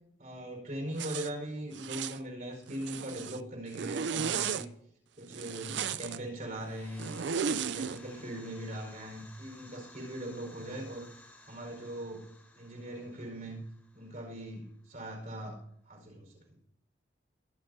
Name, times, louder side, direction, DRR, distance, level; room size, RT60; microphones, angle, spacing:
voice 1, 0.2-4.7 5.2-7.1 7.5-11.1 11.5-12.3 12.5-13.6 13.9-16.6, right 1 dB, 50° right, 0 dB, 4.8 m, -40 dB
Zipper (clothing), 1.0-1.3 1.8-2.2 2.7-3.4 3.7-4.7 5.3-6.2 7.0-8.0, right 6 dB, 80° right, 0.5 m, -34 dB
sound 1, 6.4-14.9, left 2 dB, 10° left, 2.5 m, -56 dB
23.0 x 10.0 x 2.8 m, 0.71 s
head